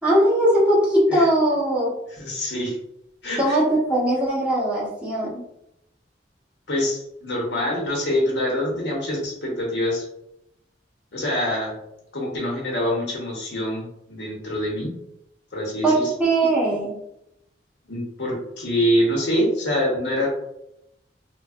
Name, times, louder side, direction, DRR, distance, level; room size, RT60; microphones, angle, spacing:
voice 1, 0.0-1.9 3.4-5.4 15.8-17.0, right 1 dB, 5° right, -7 dB, 0.9 m, -20 dB
voice 2, 2.2-2.8 3.2-3.6 6.7-10.0 11.1-11.7 12.1-14.9 15.5-15.9 17.9-20.4, equal, 80° left, -2 dB, 1.0 m, -25 dB
3.1 x 2.2 x 2.4 m, 0.81 s
head